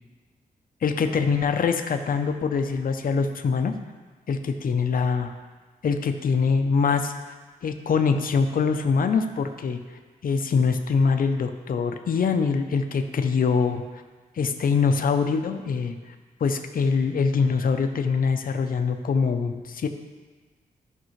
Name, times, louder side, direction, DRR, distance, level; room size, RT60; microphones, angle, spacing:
voice 1, 0.8-3.7 4.3-5.3 5.8-7.1 7.6-9.8 10.2-13.8 14.4-15.9 16.4-19.9, left 5 dB, 60° left, 6 dB, 0.7 m, -23 dB
14.5 x 5.4 x 3.2 m, 1.4 s
cardioid pair, 90°, 16 cm